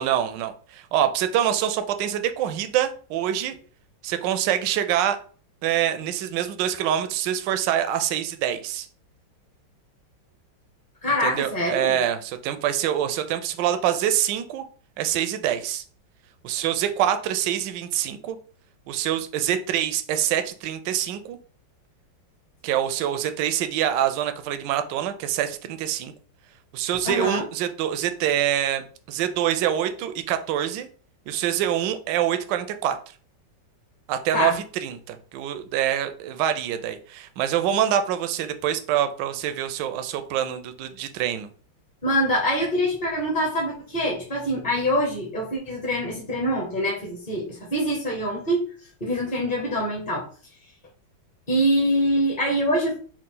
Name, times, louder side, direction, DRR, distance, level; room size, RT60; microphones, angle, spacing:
voice 1, 0.0-3.5 4.0-5.2 5.6-8.9 11.2-14.6 15.0-15.8 16.4-18.4 18.9-21.4 22.6-26.1 26.7-30.9 31.3-33.0 34.1-41.5, right 10 dB, 75° right, 9 dB, 1.2 m, -25 dB
voice 2, 11.0-11.9 27.0-27.4 34.3-34.5 42.0-48.6 49.0-50.2 51.5-53.0, equal, 30° left, -3 dB, 1.0 m, -24 dB
4.8 x 2.4 x 3.8 m, 0.42 s
omnidirectional pair, 2.0 m